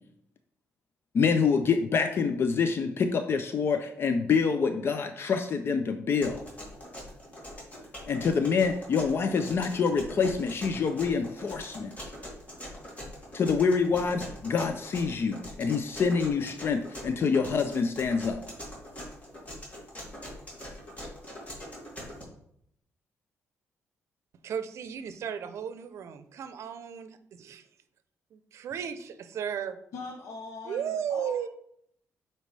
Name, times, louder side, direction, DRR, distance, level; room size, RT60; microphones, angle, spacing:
voice 1, 1.1-6.4 8.1-11.9 13.3-18.4, left 5 dB, 50° left, 8 dB, 0.5 m, -26 dB
sound 1, 6.2-22.2, equal, 30° left, 2.3 m, -42 dB
voice 2, 24.4-27.7 28.3-29.8 30.6-31.5, right 8 dB, 70° right, 11 dB, 0.6 m, -35 dB
voice 3, 29.9-31.5, left 4 dB, 85° left, 1 dB, 0.9 m, -41 dB
8.0 x 4.3 x 3.3 m, 0.71 s
cardioid pair, 110°, 5 cm